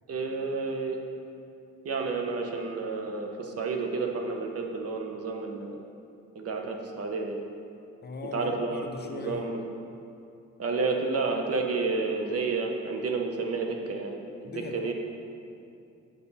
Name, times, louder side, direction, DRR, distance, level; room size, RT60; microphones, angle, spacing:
voice 1, 0.1-1.0 1.8-5.8 6.3-7.4 8.3-9.6 10.6-14.1 14.4-14.9, right 4 dB, 50° right, 2 dB, 1.0 m, -30 dB
voice 2, 8.0-9.5 14.4-14.9, left 4 dB, 35° left, 4 dB, 0.6 m, -39 dB
7.8 x 5.4 x 4.2 m, 2.6 s
cardioid pair, 90°, 30 cm